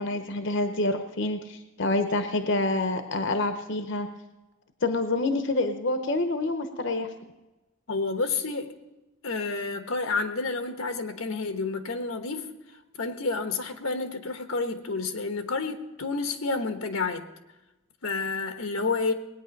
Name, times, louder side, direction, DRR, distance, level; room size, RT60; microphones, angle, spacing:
voice 1, 0.0-4.1 4.8-7.1, left 2 dB, 60° left, 0.8 m, -27 dB
voice 2, 7.9-8.7 9.2-12.5 13.0-17.3 18.0-19.1, left 3 dB, 90° left, 1.2 m, -29 dB
19.5 x 9.4 x 5.2 m
head